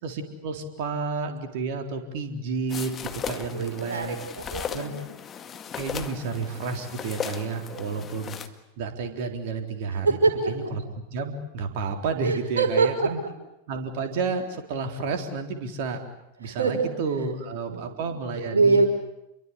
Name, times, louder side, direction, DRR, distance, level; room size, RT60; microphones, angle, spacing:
voice 1, 0.0-2.9 3.3-4.2 4.7-4.9 5.8-8.4 8.8-10.2 10.5-10.8 11.1-13.2 13.7-16.0 16.4-18.8, right 4 dB, 50° right, 5 dB, 3.9 m, -31 dB
sound 1, 2.7-8.5, left 7 dB, 25° left, 2.0 m, -36 dB
voice 2, 3.5-5.0 7.7-8.1 10.0-10.5 12.2-13.1 16.4-16.8 17.1-17.8 18.4-18.9, right 4 dB, 70° right, 4 dB, 5.6 m, -25 dB
28.5 x 23.0 x 8.5 m, 0.86 s
figure-of-eight pair, 90°, 0 cm